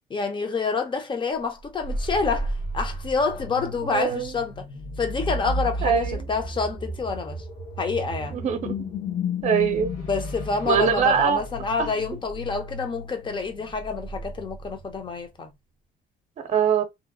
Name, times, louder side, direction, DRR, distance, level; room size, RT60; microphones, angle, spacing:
voice 1, 0.1-4.7 5.0-7.4 7.8-8.4 10.1-15.5, left 4 dB, 30° left, 0.7 m, -28 dB
sound 1, 1.6-15.1, left 1 dB, 50° left, 1.1 m, -33 dB
voice 2, 3.8-4.3 5.8-6.1 8.3-8.7 9.4-9.9 10.6-11.4 11.8-11.9 16.5-16.8, right 7 dB, 45° right, 0.7 m, -22 dB
2.8 x 2.0 x 2.4 m
cardioid pair, 110°, 17 cm